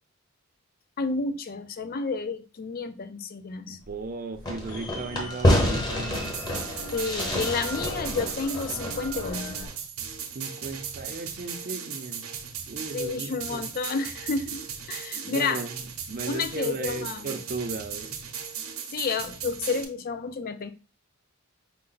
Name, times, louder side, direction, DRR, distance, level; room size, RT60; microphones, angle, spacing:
voice 1, 1.0-3.8 6.9-9.7 12.9-15.6 16.3-17.4 18.9-20.7, left 4 dB, 45° left, 0.4 m, -30 dB
voice 2, 3.7-6.4 10.3-12.3 12.7-13.6 15.2-18.2, right 3 dB, 40° right, 0.5 m, -36 dB
sound 1, 3.8-9.7, equal, 75° left, 0.8 m, -42 dB
Fireworks, 4.4-9.7, left 1 dB, 20° left, 0.9 m, -28 dB
sound 2, 6.1-19.8, right 7 dB, 75° right, 0.8 m, -37 dB
5.3 x 2.1 x 3.9 m
head